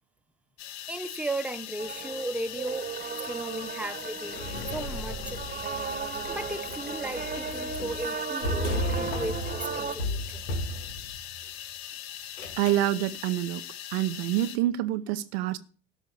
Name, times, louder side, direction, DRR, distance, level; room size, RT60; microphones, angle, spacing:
sound 1, 0.6-14.6, left 11 dB, 55° left, 1.2 m, -41 dB
voice 1, 0.9-5.5 6.3-10.4, right 2 dB, 5° right, 1.1 m, -36 dB
sound 2, 1.8-10.0, right 6 dB, 25° right, 1.3 m, -36 dB
sound 3, 4.3-11.4 12.4-12.9, left 1 dB, 85° left, 1.9 m, -35 dB
voice 2, 12.6-13.7 13.9-15.6, right 14 dB, 70° right, 0.9 m, -27 dB
12.5 x 5.4 x 6.9 m
hypercardioid pair, 70°, 33 cm